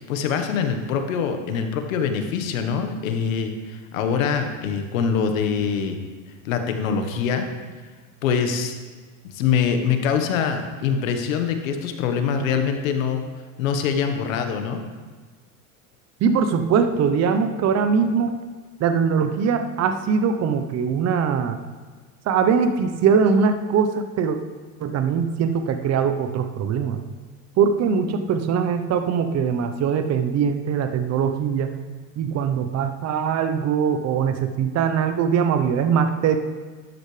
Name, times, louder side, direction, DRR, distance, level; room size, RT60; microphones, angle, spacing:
voice 1, 0.1-6.0 6.4-7.4 8.2-8.8 9.3-13.2 13.6-14.8, left 6 dB, 85° left, 6 dB, 1.5 m, -24 dB
voice 2, 16.2-18.4 18.8-21.6 22.3-24.4 24.8-27.0 27.6-31.7 32.2-36.4, right 6 dB, 40° right, 8 dB, 1.0 m, -21 dB
13.0 x 10.0 x 3.4 m, 1.4 s
supercardioid pair, 105°, 39 cm